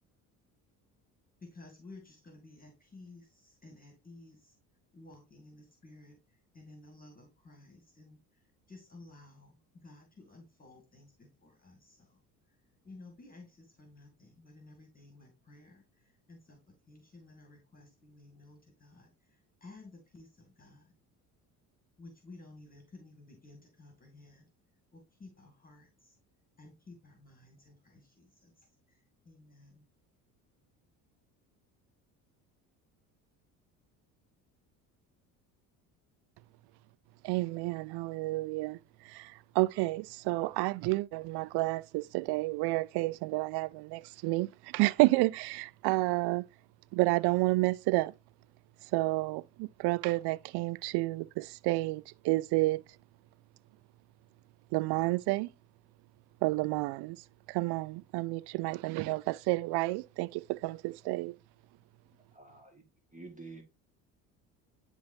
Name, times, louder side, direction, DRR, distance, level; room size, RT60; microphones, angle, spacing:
voice 1, 1.4-4.5 4.9-6.2 6.5-8.2 8.7-9.6 9.8-12.2 12.8-15.8 16.3-19.1 19.6-20.9 22.0-24.5 24.9-26.1 26.6-29.0 29.3-29.8, left 2 dB, 20° left, 2.2 m, -54 dB
voice 2, 37.2-46.4 46.9-48.1 48.8-52.8 54.7-55.5 56.4-57.2 57.5-61.3, right 21 dB, 60° right, 0.5 m, -30 dB
voice 3, 62.4-62.8 63.1-63.6, right 3 dB, 15° right, 1.9 m, -48 dB
10.5 x 3.6 x 2.7 m
hypercardioid pair, 65°, 46 cm